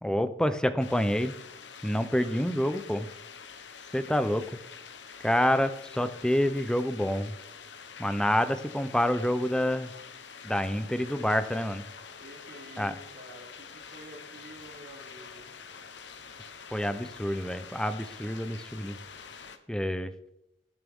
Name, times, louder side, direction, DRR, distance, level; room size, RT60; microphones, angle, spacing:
voice 1, 0.0-1.3 1.8-3.1 3.9-4.5 5.2-7.3 8.0-9.9 10.4-11.8 12.8-12.9 16.7-19.0 19.7-20.1, equal, 5° left, 11 dB, 0.6 m, -27 dB
sound 1, 0.8-19.6, left 6 dB, 85° left, 1.0 m, -46 dB
voice 2, 12.2-15.5, right 1 dB, 75° right, -7 dB, 3.5 m, -49 dB
19.5 x 7.2 x 3.6 m, 0.82 s
head